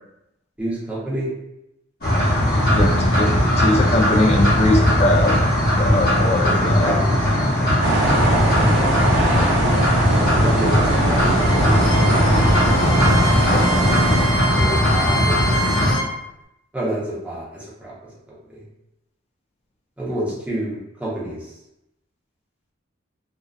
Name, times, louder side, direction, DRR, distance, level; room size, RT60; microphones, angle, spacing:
voice 1, 0.6-1.3 6.4-6.5 6.8-7.7 10.4-11.4 14.5-15.7 16.7-17.9 20.0-21.4, right 1 dB, 5° right, -7 dB, 0.6 m, -28 dB
sound 1, 2.0-16.0, left 1 dB, 50° left, 0.8 m, -18 dB
voice 2, 3.2-5.4 5.7-7.0 13.4-13.7, left 1 dB, 30° left, 0 dB, 0.3 m, -21 dB
sound 2, 7.8-14.3, right 1 dB, 65° right, 0.5 m, -21 dB
Bowed string instrument, 11.1-16.1, equal, 85° left, 0.5 m, -27 dB
2.4 x 2.2 x 2.2 m, 0.86 s
head